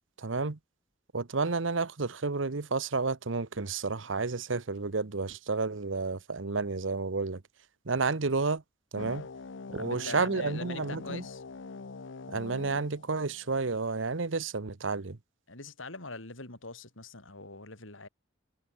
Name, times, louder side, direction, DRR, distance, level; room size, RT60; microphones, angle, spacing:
voice 1, 0.2-0.6 1.1-7.4 7.8-8.6 8.9-9.3 9.7-11.2 12.3-15.2, right 4 dB, 75° right, 1.0 m, -31 dB
sound 1, 9.0-14.0, left 4 dB, 70° left, 0.7 m, -44 dB
voice 2, 9.7-11.4 15.5-18.1, left 3 dB, 85° left, 5.4 m, -43 dB
head